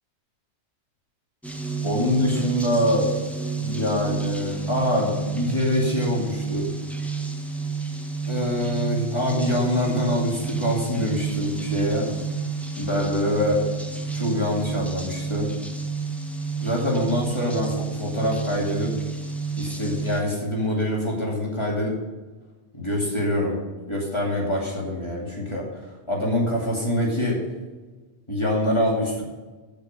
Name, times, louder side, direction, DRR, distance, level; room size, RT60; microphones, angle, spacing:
sound 1, 1.4-20.2, right 4 dB, ahead, 1.0 m, -30 dB
voice 1, 1.8-3.2 3.6-6.7 8.2-12.1 12.8-13.6 14.1-15.5 16.6-19.0 19.6-22.0 22.7-23.6 23.9-27.4 28.3-29.2, left 1 dB, 25° left, -3 dB, 2.6 m, -25 dB
15.0 x 5.2 x 5.5 m, 1.3 s
omnidirectional pair, 1.1 m